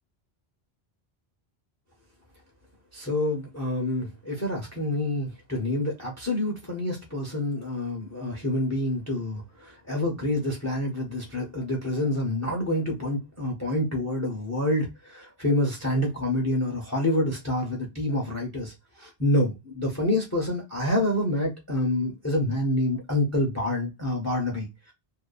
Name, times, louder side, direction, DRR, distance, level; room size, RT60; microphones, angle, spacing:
voice 1, 2.9-18.7 19.0-24.9, left 1 dB, 15° left, 0.8 m, -27 dB
2.6 x 2.3 x 2.2 m
omnidirectional pair, 1.0 m